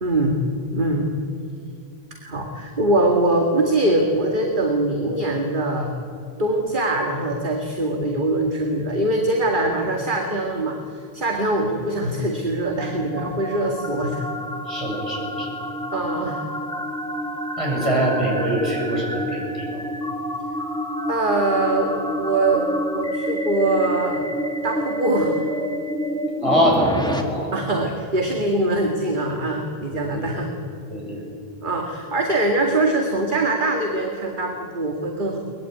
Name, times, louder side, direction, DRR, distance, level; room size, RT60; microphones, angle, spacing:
voice 1, 0.0-0.4 0.7-1.1 2.2-5.9 6.4-10.8 11.1-14.2 15.9-16.4 21.1-24.3 24.6-25.4 27.5-30.5 31.6-35.4, right 2 dB, 50° right, 2 dB, 2.2 m, -23 dB
sound 1, 12.1-27.2, equal, 5° left, 2.2 m, -28 dB
voice 2, 14.7-15.5 17.6-19.9 26.4-27.6 29.9-30.3 30.9-31.2, equal, 30° right, -2 dB, 7.3 m, -23 dB
22.5 x 20.0 x 9.5 m, 2.5 s
omnidirectional pair, 1.0 m